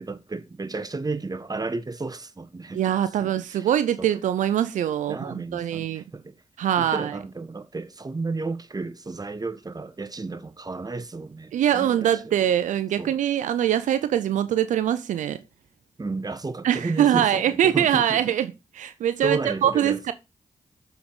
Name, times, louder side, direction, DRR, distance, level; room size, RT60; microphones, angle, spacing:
voice 1, 0.0-2.8 3.2-3.7 4.0-4.1 5.1-6.3 6.8-12.2 13.0-13.1 16.0-18.2 19.2-20.1, right 3 dB, 30° right, 1.1 m, -32 dB
voice 2, 2.7-6.0 6.6-7.1 11.5-15.4 16.6-18.5 18.7-20.1, right 10 dB, 80° right, 0.5 m, -23 dB
7.0 x 4.7 x 5.4 m
supercardioid pair, 40°, 13 cm